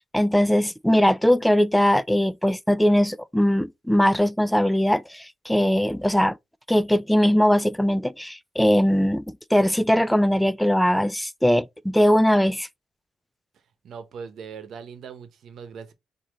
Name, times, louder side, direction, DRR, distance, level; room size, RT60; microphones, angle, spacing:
voice 1, 0.1-6.4 6.7-12.7, equal, 5° left, 0.3 m, -20 dB
voice 2, 13.8-15.9, right 6 dB, 70° right, 0.9 m, -40 dB
4.8 x 2.8 x 3.7 m
cardioid pair, 100°, 0 cm